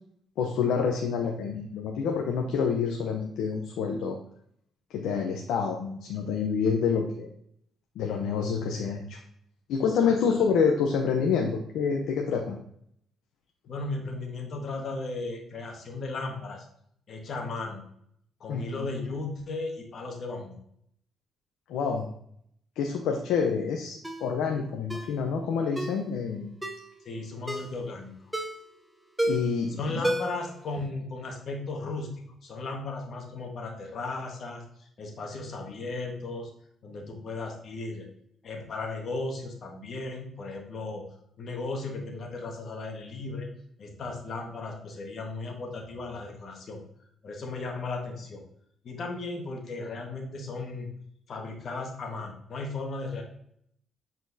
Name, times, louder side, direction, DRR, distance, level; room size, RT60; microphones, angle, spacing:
voice 1, 0.4-4.2 5.0-7.3 8.0-9.2 9.7-12.6 18.5-18.9 21.7-22.1 22.8-26.5 29.2-30.0, left 6 dB, 85° left, 2 dB, 0.7 m, -27 dB
voice 2, 9.8-10.2 13.7-16.7 17.1-17.8 18.4-20.6 27.0-28.1 29.8-32.1 32.4-36.5 36.8-38.1 38.4-41.0 41.4-43.5 43.8-46.8 47.2-48.4 48.8-50.9 51.3-53.2, left 3 dB, 55° left, 2 dB, 1.5 m, -36 dB
Ringtone, 24.0-24.3 24.9-25.1 25.8-26.0 26.6-26.9 27.5-27.8 28.3-28.7 29.2-29.6 30.0-30.5 30.8-30.9, right 1 dB, 5° right, 0.8 m, -31 dB
7.9 x 4.3 x 2.7 m, 0.69 s
cardioid pair, 90°, 0 cm